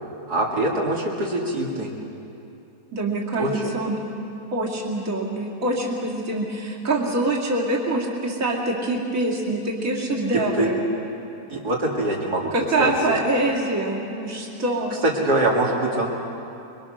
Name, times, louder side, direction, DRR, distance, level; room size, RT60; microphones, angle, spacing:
voice 1, 0.3-1.9 3.4-3.6 10.6-10.7 11.5-12.5 12.8-12.9 15.0-16.1, right 2 dB, 80° right, -3 dB, 2.9 m, -23 dB
voice 2, 2.9-4.0 4.5-10.8 12.5-14.9, right 2 dB, 55° right, -2 dB, 3.0 m, -25 dB
25.0 x 23.0 x 6.5 m, 2.7 s
omnidirectional pair, 1.7 m